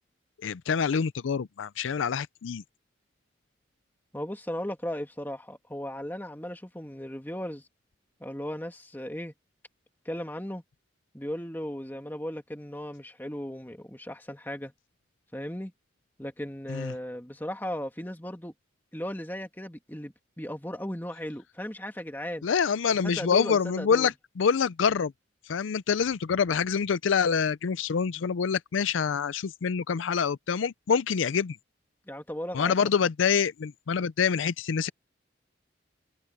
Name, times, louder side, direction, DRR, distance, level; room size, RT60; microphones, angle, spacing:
voice 1, 0.4-2.6 16.7-16.9 22.4-25.1 25.5-31.6 32.5-34.9, left 6 dB, 80° left, 0.5 m, -26 dB
voice 2, 4.1-7.7 8.2-9.3 10.1-10.6 11.1-14.7 15.3-15.7 16.2-18.5 18.9-22.5 23.0-24.1 32.1-32.8, equal, 10° left, 2.2 m, -36 dB
head